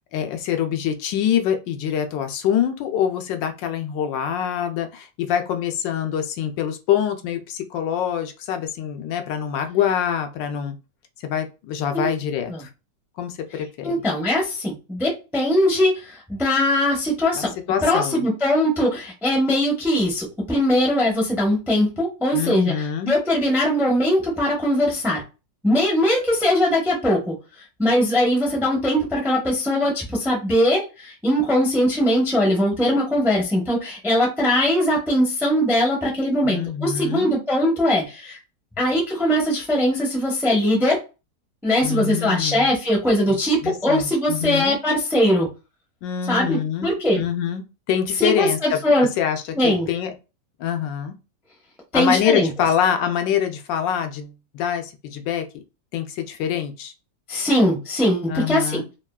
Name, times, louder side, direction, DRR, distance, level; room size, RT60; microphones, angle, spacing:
voice 1, 0.1-10.8 11.2-12.7 13.2-13.9 17.3-18.3 22.3-23.1 36.4-37.3 41.8-42.7 43.3-44.8 46.0-48.8 49.2-50.1 50.6-51.1 51.9-55.6 55.9-56.9 58.3-58.9, left 9 dB, 85° left, 6 dB, 1.3 m, -25 dB
voice 2, 13.8-17.5 17.8-22.7 23.0-25.2 25.6-27.3 27.8-38.4 38.8-41.0 41.6-45.5 46.3-47.2 48.2-49.1 49.5-49.9 51.9-52.5 57.3-58.8, left 1 dB, 5° right, -2 dB, 0.4 m, -21 dB
3.5 x 2.3 x 2.2 m, 0.29 s
omnidirectional pair, 1.9 m